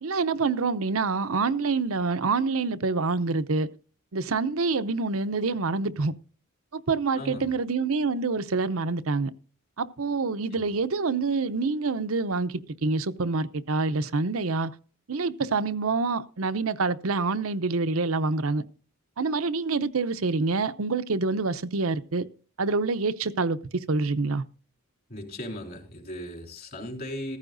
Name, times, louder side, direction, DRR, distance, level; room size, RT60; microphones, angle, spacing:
voice 1, 0.0-3.7 4.1-6.1 6.7-9.3 9.8-14.7 15.1-18.6 19.2-22.2 22.6-23.6 23.9-24.4, right 4 dB, 80° right, 0.7 m, -26 dB
voice 2, 7.1-7.5 10.5-10.7 25.1-27.4, left 1 dB, 45° left, 4.2 m, -37 dB
15.0 x 14.5 x 2.6 m
head